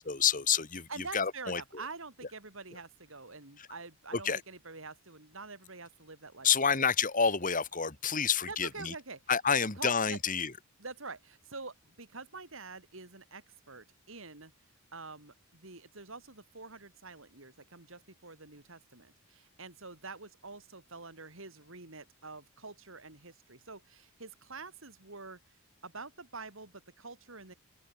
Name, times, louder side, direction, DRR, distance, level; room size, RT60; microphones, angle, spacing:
voice 1, 0.0-1.8 3.6-3.7 4.1-4.4 6.4-8.9 9.3-10.5, left 6 dB, 35° left, 2.2 m, -29 dB
voice 2, 0.9-6.7 8.5-9.2 9.7-10.2 10.8-14.5 14.9-25.4 25.8-27.5, right 3 dB, 60° right, 3.4 m, -46 dB
open air
head